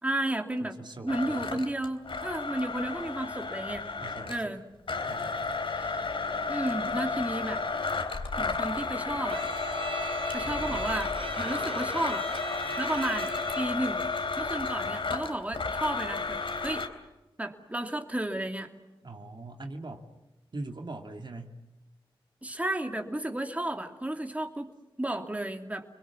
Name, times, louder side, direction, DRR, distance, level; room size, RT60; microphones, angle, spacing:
voice 1, 0.0-0.8 1.0-3.8 4.3-4.6 5.7-6.0 6.5-7.6 8.4-9.5 10.3-12.3 12.8-14.0 14.4-16.8 17.4-18.7 22.4-24.7 25.0-25.8, right 1 dB, 15° right, 4 dB, 2.7 m, -33 dB
voice 2, 0.6-1.6 4.0-4.6 5.1-5.5 10.4-10.9 19.0-20.1 20.5-21.6, right 2 dB, 55° right, 4 dB, 2.6 m, -42 dB
Domestic sounds home sounds, 1.1-4.5 4.9-16.9, left 4 dB, 70° left, 3.4 m, -32 dB
Bowed string instrument, 9.3-13.9, right 2 dB, 75° right, 4.3 m, -38 dB
29.5 x 22.0 x 7.3 m, 1.0 s
cardioid pair, 60°, 9 cm